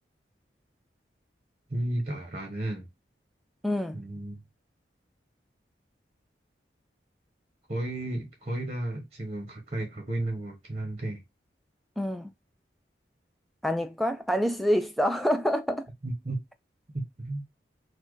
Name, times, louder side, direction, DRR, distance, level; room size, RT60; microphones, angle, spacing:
voice 1, 1.7-2.9 3.9-4.4 7.7-11.2 16.0-16.4 16.9-17.4, right 1 dB, 35° right, 1.0 m, -33 dB
voice 2, 3.6-4.0 12.0-12.3 13.6-15.9, equal, ahead, 0.4 m, -27 dB
4.3 x 2.2 x 4.6 m
head